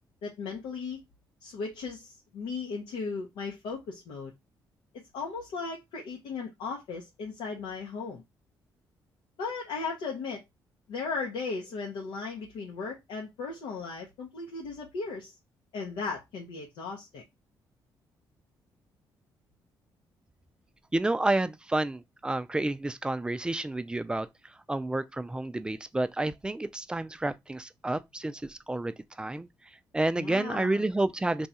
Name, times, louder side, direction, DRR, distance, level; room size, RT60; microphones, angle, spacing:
voice 1, 0.2-1.0 1.4-4.3 5.1-8.2 9.4-10.4 10.9-15.3 15.7-17.2 30.1-30.8, left 4 dB, 90° left, 0.7 m, -36 dB
voice 2, 20.9-24.3 24.7-29.5 29.9-31.5, right 2 dB, 10° right, 0.3 m, -30 dB
2.7 x 2.3 x 4.1 m
cardioid pair, 75°, 8 cm